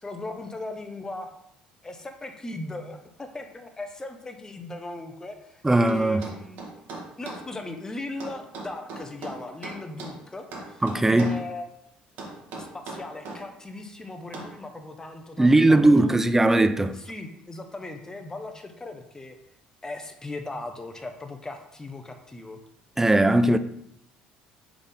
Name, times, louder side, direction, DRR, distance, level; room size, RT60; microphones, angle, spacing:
voice 1, 0.0-1.3 1.8-6.7 7.2-11.6 12.6-16.1 16.9-19.4 19.8-22.6, left 2 dB, 20° left, 0.7 m, -38 dB
voice 2, 5.6-6.3 10.8-11.4 15.4-17.0 23.0-23.6, right 2 dB, 10° right, 0.3 m, -19 dB
sound 1, 5.9-7.5 8.2-10.2 10.5-11.4 12.2-13.4 14.3-14.6, right 2 dB, 70° right, 1.2 m, -38 dB
4.0 x 3.5 x 3.5 m
supercardioid pair, 75°, 3 cm